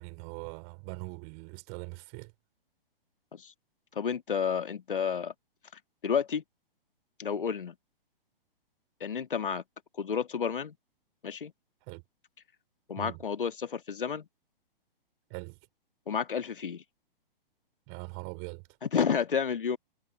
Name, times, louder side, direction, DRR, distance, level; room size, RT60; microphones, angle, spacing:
voice 1, 0.0-2.3 11.9-12.0 13.0-13.2 15.3-15.6 17.9-18.6, right 40 dB or more, 30° right, 4.5 m, -41 dB
voice 2, 4.0-5.3 6.0-6.4 7.2-7.7 9.0-9.6 10.0-10.7 11.2-11.5 12.9-14.3 16.1-16.8 18.8-19.8, left 7 dB, 60° left, 2.3 m, -30 dB
figure-of-eight pair, 120°, 29 cm